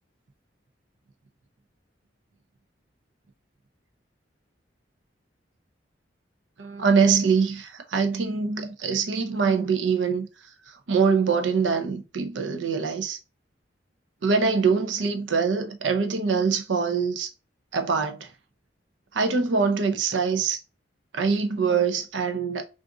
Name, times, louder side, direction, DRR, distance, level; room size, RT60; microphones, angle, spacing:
voice 1, 6.6-10.3 10.9-13.2 14.2-17.3 17.7-18.3 19.1-20.6 21.1-22.6, right 5 dB, 85° right, 0.6 m, -24 dB
2.5 x 2.5 x 3.6 m
head